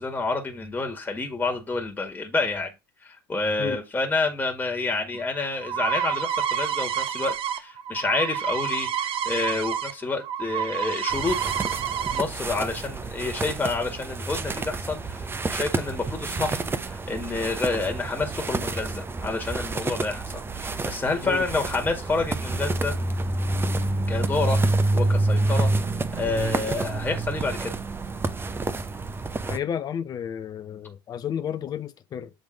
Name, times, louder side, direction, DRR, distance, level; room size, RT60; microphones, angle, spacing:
voice 1, 0.0-2.7 3.0-11.4 12.1-20.2 20.5-22.9 24.1-24.6 24.9-25.7 26.1-27.7, left 3 dB, 15° left, 1.9 m, -28 dB
sound 1, 5.1-9.9 10.2-12.2, right 9 dB, 50° right, 1.0 m, -28 dB
sound 2, 11.1-29.6, right 2 dB, 20° right, 0.8 m, -28 dB
voice 2, 29.4-32.3, left 9 dB, 35° left, 0.6 m, -32 dB
8.0 x 3.5 x 4.0 m
hypercardioid pair, 75°, 12 cm